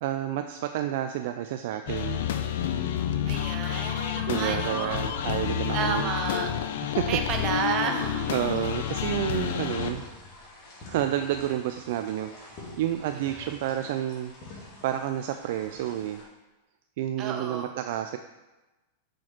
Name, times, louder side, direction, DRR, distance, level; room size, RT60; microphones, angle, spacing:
voice 1, 0.0-2.2 4.3-6.1 6.8-7.1 7.4-7.5 8.3-10.0 10.9-16.2 17.0-18.2, right 12 dB, 65° right, 7 dB, 0.3 m, -30 dB
sound 1, 1.9-9.9, left 10 dB, 70° left, 0.5 m, -29 dB
voice 2, 3.3-5.1 5.7-6.5 7.1-8.4 9.3-9.4 13.3-13.5 17.2-17.7, right 6 dB, 40° right, 4 dB, 0.9 m, -31 dB
sound 2, 7.2-16.2, left 2 dB, 45° left, 2.2 m, -47 dB
6.1 x 4.6 x 4.4 m, 1.1 s
hypercardioid pair, 115°, 0 cm